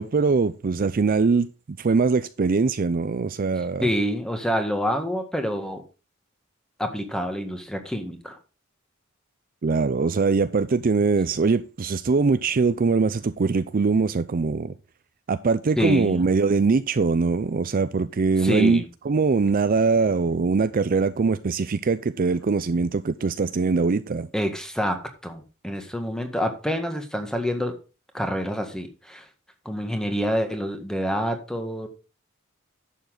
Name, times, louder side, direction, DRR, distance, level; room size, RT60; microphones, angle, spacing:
voice 1, 0.0-1.5 1.8-3.9 9.6-14.7 15.3-24.3, right 4 dB, 40° right, 0.5 m, -22 dB
voice 2, 3.8-5.8 6.8-8.4 15.8-16.3 18.4-18.9 24.3-27.8 28.1-29.3 29.7-31.9, equal, 5° left, 1.8 m, -27 dB
11.0 x 7.3 x 3.8 m
head